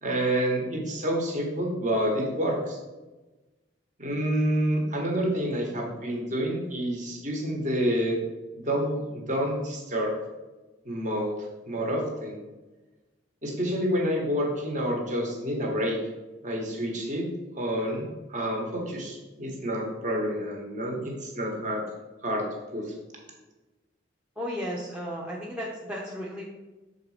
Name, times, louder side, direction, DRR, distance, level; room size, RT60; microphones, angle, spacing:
voice 1, 0.0-2.8 4.0-8.2 8.6-10.1 10.8-11.3 11.7-12.4 13.4-16.0 16.4-17.3 17.5-21.8 22.2-22.5 22.7-22.9, equal, 40° right, 0 dB, 1.4 m, -28 dB
voice 2, 24.4-26.4, equal, 5° right, -5 dB, 0.7 m, -34 dB
6.5 x 4.1 x 4.9 m, 1.1 s
head